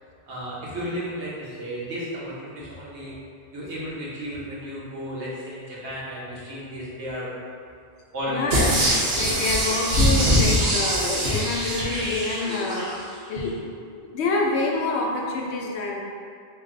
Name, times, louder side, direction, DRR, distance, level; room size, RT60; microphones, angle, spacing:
voice 1, 0.3-3.2 3.5-7.3 8.1-9.0, equal, 85° right, -7 dB, 1.3 m, -33 dB
voice 2, 8.3-8.7 9.2-12.9 13.3-13.5 13.9-16.0, left 3 dB, 75° left, -1 dB, 0.9 m, -27 dB
sound 1, 8.5-12.9 13.4-13.5, equal, 55° right, 0.9 m, -23 dB
3.8 x 2.6 x 3.7 m, 2.2 s
omnidirectional pair, 1.1 m